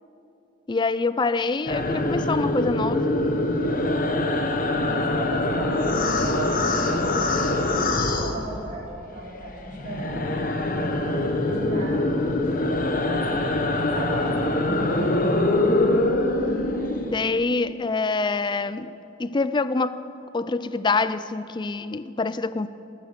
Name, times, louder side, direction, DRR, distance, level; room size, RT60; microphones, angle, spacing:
voice 1, 0.7-3.1 17.1-20.0 20.3-22.7, left 3 dB, 25° left, 0.4 m, -25 dB
sound 1, 1.7-9.0 9.3-17.3, left 2 dB, 50° left, 1.2 m, -24 dB
voice 2, 4.8-10.3 10.8-13.5 13.8-15.1, right 1 dB, 45° right, 4.2 m, -36 dB
19.5 x 9.1 x 6.7 m
head